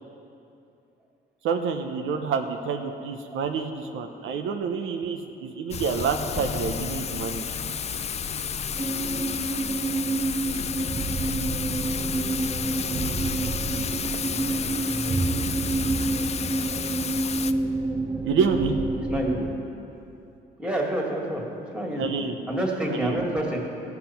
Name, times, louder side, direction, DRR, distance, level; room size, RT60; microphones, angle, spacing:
voice 1, 1.4-7.4 18.2-18.8 22.0-22.4 22.9-23.2, right 5 dB, 80° right, 5 dB, 0.7 m, -28 dB
Thunder / Rain, 5.7-17.5, left 7 dB, 35° left, 0.4 m, -31 dB
sound 1, 8.8-19.5, right 2 dB, 25° right, 0.7 m, -28 dB
voice 2, 19.1-19.5 20.6-21.4 21.7-22.1 22.5-23.7, right 1 dB, 5° right, -1 dB, 2.1 m, -28 dB
15.0 x 5.8 x 5.8 m, 2.7 s
cardioid pair, 90°, 20 cm